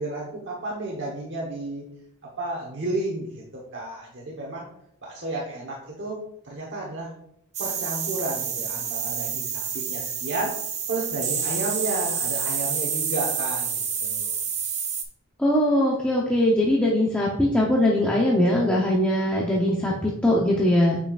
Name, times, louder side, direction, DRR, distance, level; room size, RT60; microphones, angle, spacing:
voice 1, 0.0-1.9 2.4-4.7 5.0-6.2 6.4-7.1 7.6-10.6 10.9-14.7, right 2 dB, 55° right, -3 dB, 1.1 m, -32 dB
sound 1, 7.5-15.0, right 7 dB, 30° right, 0.7 m, -28 dB
voice 2, 15.4-21.0, left 1 dB, 5° left, -4 dB, 0.7 m, -21 dB
7.4 x 5.6 x 2.4 m, 0.74 s
head